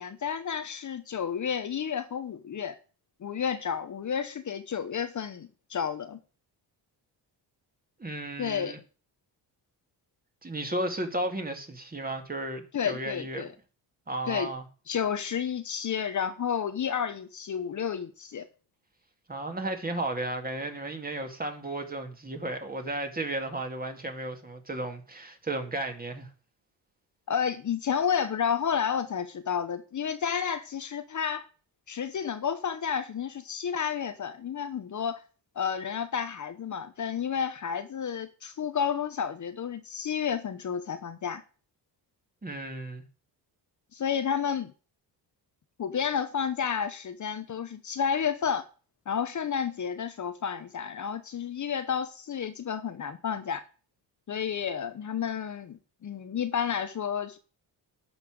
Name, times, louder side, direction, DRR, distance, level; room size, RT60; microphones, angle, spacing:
voice 1, 0.0-2.8 3.2-6.2 8.4-8.8 12.7-13.5 14.3-14.5 14.9-18.4 27.3-31.5 31.9-35.2 35.6-41.4 43.9-44.7 45.8-48.6 49.1-53.6 54.3-57.4, left 7 dB, 45° left, 1.0 m, -31 dB
voice 2, 8.0-8.8 10.4-13.4 14.1-14.6 19.3-26.3 42.4-43.0, right 1 dB, 20° right, 2.3 m, -34 dB
11.0 x 5.8 x 6.5 m
cardioid pair, 105°, 41 cm